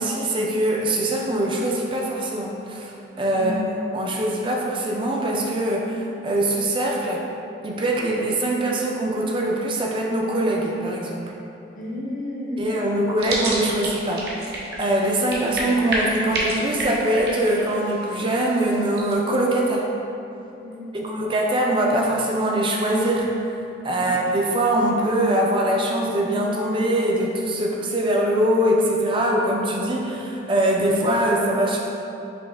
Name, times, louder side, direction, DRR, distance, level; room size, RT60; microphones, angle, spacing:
voice 1, 0.0-3.6 3.9-7.2 7.6-11.3 12.6-19.9 20.9-23.3 23.8-31.8, right 1 dB, 25° right, -1 dB, 0.4 m, -23 dB
voice 2, 3.3-3.7 11.7-13.0 20.6-21.3 24.0-24.2, left 1 dB, 45° left, -5 dB, 0.7 m, -32 dB
sound 1, 13.2-19.1, right 1 dB, 60° right, 0.8 m, -30 dB
5.2 x 2.8 x 3.4 m, 2.8 s
head